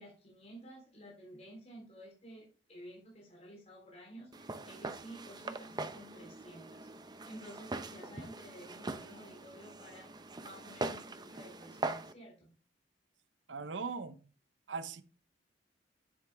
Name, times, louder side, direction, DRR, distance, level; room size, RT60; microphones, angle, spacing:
voice 1, 0.0-12.5, right 1 dB, 40° left, 3.8 m, -53 dB
Walk footsteps, 4.3-12.1, right 2 dB, 25° right, 0.7 m, -42 dB
voice 2, 13.5-14.2 14.7-15.0, right 4 dB, 90° right, 0.9 m, -39 dB
8.9 x 7.7 x 3.5 m
head